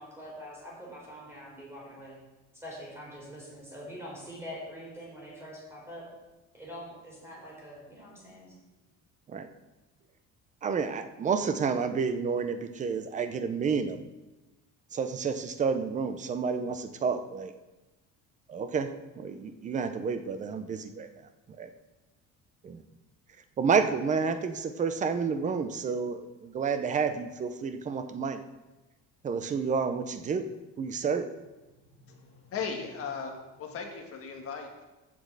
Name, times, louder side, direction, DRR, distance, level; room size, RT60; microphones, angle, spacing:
voice 1, 0.0-2.2 2.5-6.1 6.5-8.5, equal, 10° right, -5 dB, 3.9 m, -44 dB
voice 2, 10.6-14.0 14.9-17.5 18.5-18.9 19.2-21.1 21.6-21.7 22.6-22.8 23.6-28.4 29.2-30.5 30.8-31.3, right 5 dB, 25° right, 9 dB, 0.6 m, -30 dB
voice 3, 32.0-34.8, left 5 dB, 45° left, 2 dB, 1.5 m, -37 dB
8.3 x 6.1 x 7.4 m, 1.1 s
cardioid pair, 175°, 32 cm